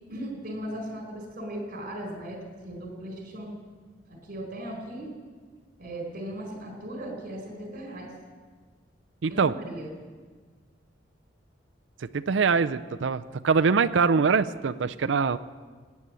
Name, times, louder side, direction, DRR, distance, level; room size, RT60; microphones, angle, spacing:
voice 1, 0.1-3.5 4.1-5.1 5.8-8.1 9.3-9.9, right 1 dB, 50° right, 2 dB, 4.4 m, -37 dB
voice 2, 9.2-9.5 12.1-15.4, right 5 dB, 75° right, 11 dB, 0.5 m, -23 dB
18.0 x 9.7 x 7.6 m, 1.5 s
head